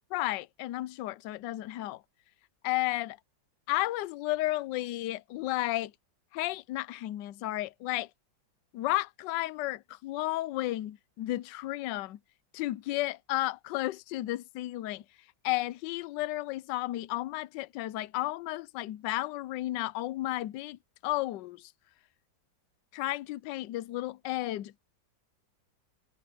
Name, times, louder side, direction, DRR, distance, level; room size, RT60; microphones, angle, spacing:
voice 1, 0.1-2.0 2.6-3.2 3.7-5.9 6.3-8.1 8.7-12.2 12.5-15.0 15.4-21.7 22.9-24.8, left 16 dB, 75° left, 1.3 m, -33 dB
omnidirectional pair, 2.0 m